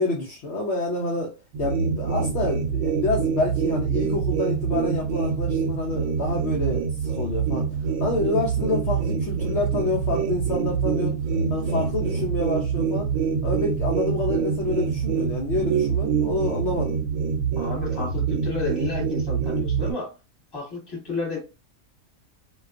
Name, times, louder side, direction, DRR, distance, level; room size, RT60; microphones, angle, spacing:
voice 1, 0.0-1.3 1.6-11.2 11.5-13.1 13.4-17.0, left 2 dB, 65° left, 0.8 m, -28 dB
sound 1, 1.5-19.9, right 6 dB, 75° right, 0.9 m, -25 dB
voice 2, 17.6-20.1 20.5-21.4, left 3 dB, 20° left, 1.2 m, -31 dB
2.4 x 2.3 x 2.4 m
omnidirectional pair, 1.4 m